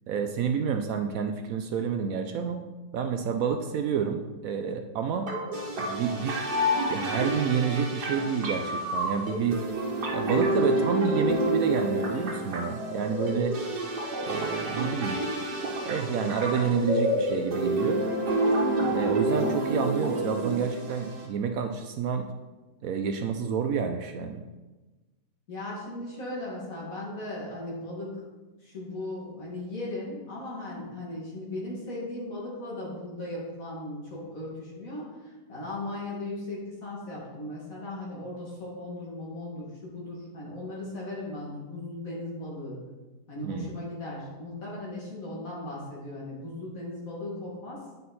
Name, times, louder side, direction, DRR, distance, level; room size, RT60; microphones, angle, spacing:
voice 1, 0.1-2.6 2.9-5.3 5.8-6.4 6.7-9.6 10.1-13.6 14.2-15.2 15.8-18.0 18.8-22.3 22.8-24.4 43.4-43.7, right 6 dB, 70° right, 6 dB, 0.9 m, -29 dB
sound 1, 5.3-21.3, right 1 dB, 90° right, 1.8 m, -28 dB
voice 2, 25.5-28.1 28.6-35.1 35.5-42.8 43.3-47.8, left 1 dB, 60° left, -5 dB, 2.6 m, -37 dB
9.3 x 5.4 x 4.2 m, 1.2 s
omnidirectional pair, 1.7 m